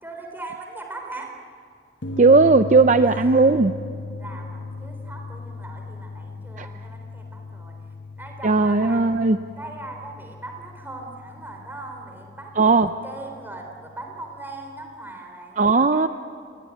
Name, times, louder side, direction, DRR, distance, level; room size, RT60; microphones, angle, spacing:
voice 1, 0.0-1.3 3.1-3.6 4.2-7.8 8.2-9.0 9.6-16.1, right 2 dB, 10° right, 2 dB, 3.7 m, -39 dB
sound 1, 2.0-14.9, left 3 dB, 75° left, 1.1 m, -38 dB
voice 2, 2.2-3.7 6.6-6.7 8.4-9.4 12.6-12.9 15.6-16.1, right 3 dB, 45° right, 9 dB, 0.6 m, -16 dB
28.0 x 21.0 x 9.2 m, 2.3 s
head